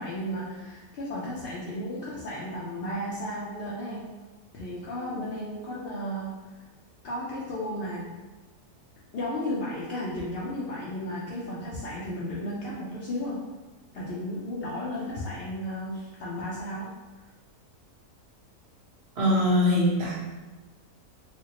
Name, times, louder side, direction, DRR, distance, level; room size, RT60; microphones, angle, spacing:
voice 1, 0.0-4.0 4.5-6.3 7.0-8.1 9.1-13.4 13.9-16.9, left 1 dB, 65° left, -7 dB, 0.6 m, -34 dB
voice 2, 19.2-20.2, left 1 dB, 45° right, -6 dB, 1.1 m, -22 dB
4.2 x 2.2 x 2.9 m, 1.2 s
omnidirectional pair, 1.6 m